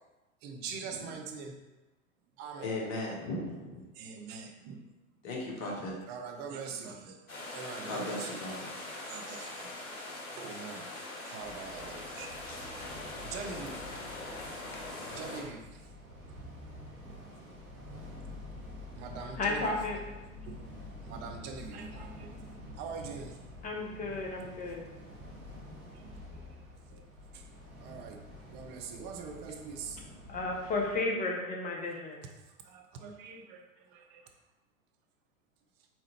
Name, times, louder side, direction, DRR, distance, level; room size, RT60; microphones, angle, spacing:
voice 1, 0.4-1.6 2.4-2.7 4.0-4.8 6.1-7.2 7.5-8.4 9.0-9.7 10.4-10.9 11.3-12.3 13.2-13.8 15.1-15.8 19.0-19.7 20.5-20.6 21.0-22.3 22.8-23.4 25.9-26.5 26.9-27.1 27.3-27.4 27.8-30.0 32.6-33.6 33.9-34.2, right 5 dB, 25° right, 4 dB, 0.4 m, -43 dB
voice 2, 2.6-3.8 5.2-5.9 7.8-8.8, left 1 dB, 45° left, -3 dB, 1.5 m, -37 dB
sound 1, 7.3-15.4, left 2 dB, 90° left, 1.0 m, -42 dB
sound 2, 11.4-31.0, left 1 dB, 85° right, 1.0 m, -48 dB
voice 3, 19.4-20.0 23.6-24.9 30.3-32.2, left 2 dB, 20° left, 0 dB, 0.8 m, -33 dB
4.2 x 3.6 x 3.1 m, 1.1 s
figure-of-eight pair, 95°, 42 cm